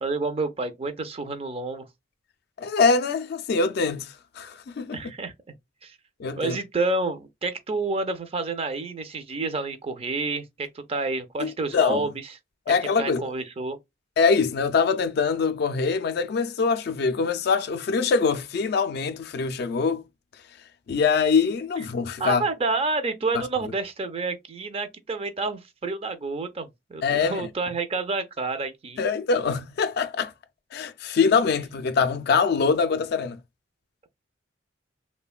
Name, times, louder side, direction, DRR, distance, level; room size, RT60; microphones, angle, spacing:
voice 1, 0.0-1.9 4.9-5.3 5.8-6.0 6.4-12.3 12.7-13.8 21.8-21.9 22.2-29.0, right 3 dB, 30° right, 0.4 m, -29 dB
voice 2, 2.6-5.0 6.2-6.6 11.4-12.1 12.7-13.3 14.2-20.0 20.9-22.4 23.3-23.4 27.0-27.5 29.0-30.3 30.7-33.4, left 5 dB, 55° left, 0.3 m, -24 dB
3.0 x 2.1 x 2.3 m
head